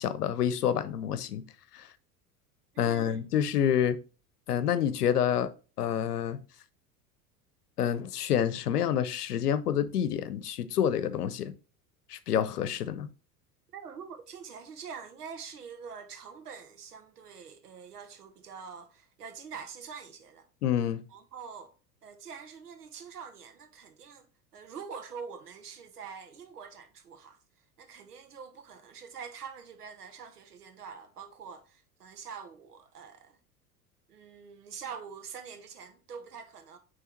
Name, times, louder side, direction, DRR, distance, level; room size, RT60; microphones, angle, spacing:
voice 1, 0.0-1.4 1.7-1.9 2.8-4.0 4.5-5.5 5.8-6.4 7.8-11.5 12.1-13.1 20.6-21.0, left 9 dB, 80° left, 0.8 m, -28 dB
voice 2, 2.7-3.3 13.7-20.5 21.1-21.7 22.0-24.3 24.5-27.4 27.8-33.4 34.1-36.8, right 6 dB, 80° right, 1.3 m, -45 dB
9.2 x 3.3 x 4.4 m
figure-of-eight pair, 80°, 46 cm